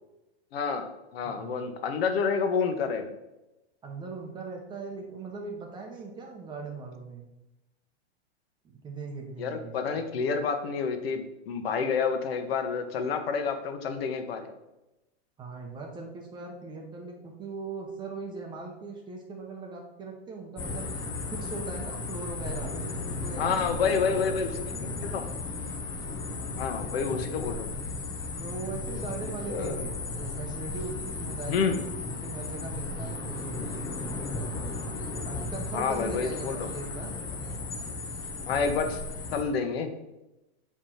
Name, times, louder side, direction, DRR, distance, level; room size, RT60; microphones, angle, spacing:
voice 1, 0.5-0.9 1.1-3.1 9.4-14.5 23.4-24.5 25.0-25.3 26.5-27.7 29.5-29.8 31.5-31.8 35.7-36.7 38.5-39.0 39.3-39.9, left 5 dB, 60° left, 6 dB, 1.3 m, -29 dB
voice 2, 1.2-1.6 3.8-7.3 8.6-10.0 15.4-20.9 21.3-22.8 23.2-24.2 26.2-26.7 28.3-34.0 35.2-37.1, right 4 dB, 15° right, 1 dB, 0.9 m, -40 dB
sound 1, 20.6-39.4, left 3 dB, 10° left, 0.5 m, -35 dB
7.6 x 4.9 x 5.7 m, 0.95 s
supercardioid pair, 165°, 33 cm